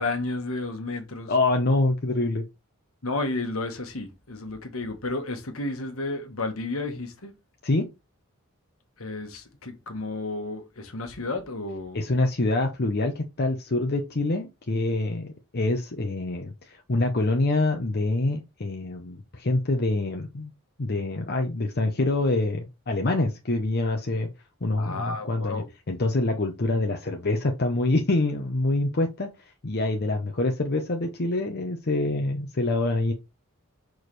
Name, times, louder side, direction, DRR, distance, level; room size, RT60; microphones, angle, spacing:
voice 1, 0.0-1.3 3.0-7.3 9.0-12.0 24.8-25.7, left 2 dB, 70° left, 1.4 m, -32 dB
voice 2, 1.3-2.4 7.6-7.9 11.9-20.5 20.8-24.3 24.6-29.3 29.6-33.1, left 2 dB, 50° left, 0.8 m, -26 dB
6.4 x 4.7 x 3.2 m
head